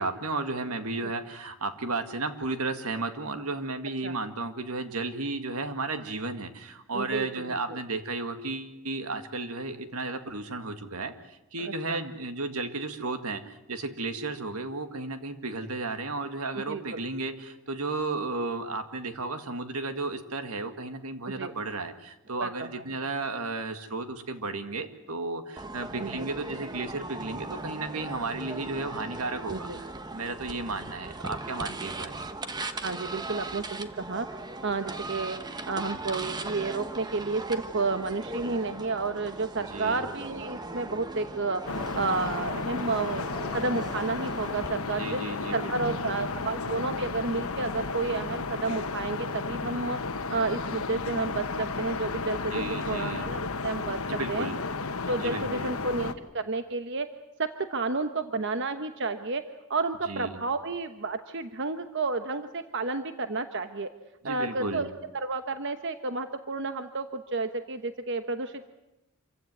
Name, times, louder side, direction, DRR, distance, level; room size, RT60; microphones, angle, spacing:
voice 1, 0.0-29.9 30.1-32.2 39.7-40.0 45.0-46.4 52.5-53.3 54.1-54.6 55.2-55.7 60.1-60.3 64.2-64.9, right 3 dB, 85° right, 8 dB, 2.0 m, -34 dB
voice 2, 6.9-7.8 11.6-12.0 16.5-17.0 21.2-21.5 22.4-22.8 26.0-26.3 29.5-29.8 32.8-35.4 35.7-45.2 45.5-50.0 50.3-52.5 52.9-54.0 54.3-54.5 55.1-57.1 57.4-59.4 59.7-63.9 64.2-64.9 65.2-68.6, right 3 dB, 55° right, 8 dB, 1.1 m, -31 dB
sound 1, 25.6-44.7, right 2 dB, 20° right, 1.1 m, -39 dB
sound 2, 41.7-56.1, left 4 dB, 75° left, 1.2 m, -33 dB
27.0 x 16.0 x 9.4 m, 0.94 s
head